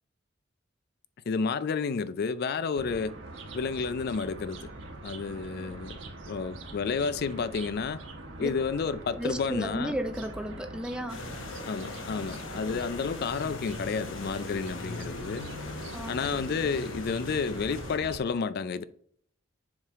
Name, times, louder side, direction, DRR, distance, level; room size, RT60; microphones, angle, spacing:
voice 1, 1.3-3.1 3.5-4.7 5.0-6.0 6.3-8.0 8.4-9.9 11.7-15.5 16.1-18.8, left 5 dB, 55° left, 0.4 m, -31 dB
sound 1, 2.7-18.2, right 2 dB, 70° right, 1.2 m, -43 dB
voice 2, 9.2-11.3 15.9-16.2, equal, 5° right, 0.5 m, -34 dB
sound 2, 11.1-18.0, left 2 dB, 80° left, 0.9 m, -40 dB
7.2 x 5.0 x 3.6 m
head